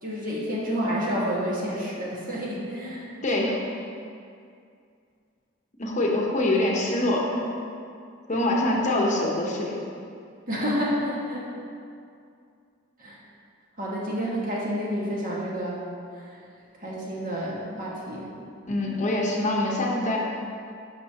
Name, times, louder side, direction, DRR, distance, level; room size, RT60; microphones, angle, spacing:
voice 1, 0.0-3.1 8.3-8.8 10.5-11.4 13.0-13.2 13.8-15.8 16.1-16.3 16.8-18.3, equal, 45° right, -6 dB, 1.6 m, -29 dB
voice 2, 3.2-3.6 5.8-7.5 8.3-9.8 18.7-20.2, left 1 dB, 40° left, -2 dB, 0.9 m, -24 dB
12.0 x 5.3 x 2.8 m, 2.4 s
head